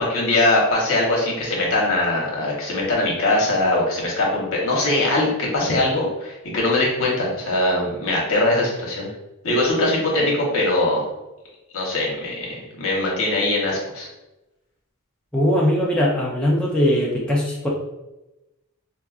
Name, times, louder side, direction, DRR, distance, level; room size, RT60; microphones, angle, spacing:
voice 1, 0.1-9.1 9.4-11.0 11.7-14.1, left 2 dB, 65° left, -3 dB, 1.0 m, -21 dB
voice 2, 15.3-17.7, equal, 5° left, -5 dB, 0.4 m, -20 dB
4.2 x 2.3 x 2.4 m, 0.99 s
head